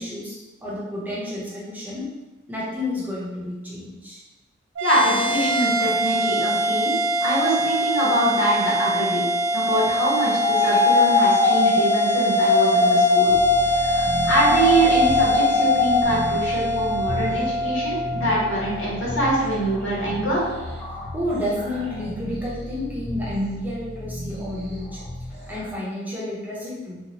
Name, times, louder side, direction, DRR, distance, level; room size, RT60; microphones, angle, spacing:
voice 1, 0.0-2.1 2.5-4.2 21.1-25.0 25.5-27.0, left 1 dB, 10° right, -8 dB, 0.7 m, -30 dB
sound 1, 4.7-19.3, right 1 dB, 70° right, 0.4 m, -24 dB
voice 2, 4.8-6.9 7.2-9.2 9.5-13.3 13.6-20.4, right 1 dB, 85° left, -5 dB, 1.0 m, -24 dB
sound 2, 10.4-16.0, left 3 dB, 50° left, 0.4 m, -20 dB
sound 3, 13.3-25.7, left 1 dB, 5° left, 1.0 m, -34 dB
2.8 x 2.1 x 2.9 m, 1.1 s
head